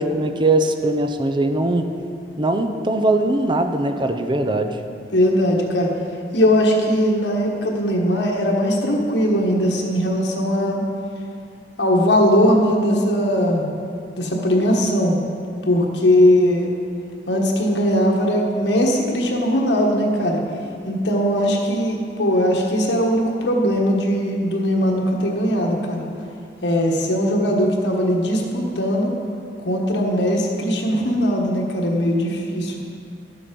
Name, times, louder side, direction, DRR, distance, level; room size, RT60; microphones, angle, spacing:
voice 1, 0.0-1.9 2.4-4.8, right 2 dB, 25° right, 7 dB, 0.6 m, -20 dB
voice 2, 5.1-5.9 6.3-10.8 11.8-13.7 14.2-15.2 15.7-16.7 17.3-20.4 20.8-26.0 26.6-29.1 29.6-32.8, equal, 80° left, -1 dB, 1.4 m, -19 dB
11.5 x 7.1 x 5.3 m, 2.4 s
head